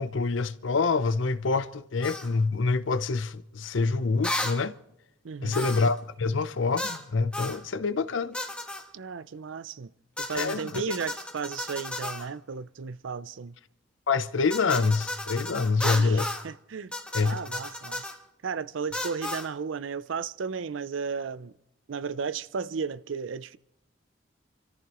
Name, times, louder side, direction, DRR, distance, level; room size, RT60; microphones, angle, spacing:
voice 1, 0.0-4.7 5.4-8.4 10.3-10.8 14.1-16.3 17.1-17.4, left 4 dB, 85° left, 0.7 m, -26 dB
sound 1, 2.0-2.3 4.2-4.6 5.5-6.0 6.8-7.0 7.3-7.6 8.3-8.8 10.2-12.3 14.5-16.5 16.9-18.2 18.9-19.5, left 1 dB, 5° left, 1.4 m, -34 dB
voice 2, 5.2-5.7 8.9-9.9 10.2-13.5 15.8-18.1 18.4-21.5 21.9-23.6, right 5 dB, 85° right, 0.5 m, -34 dB
29.5 x 14.0 x 3.0 m
head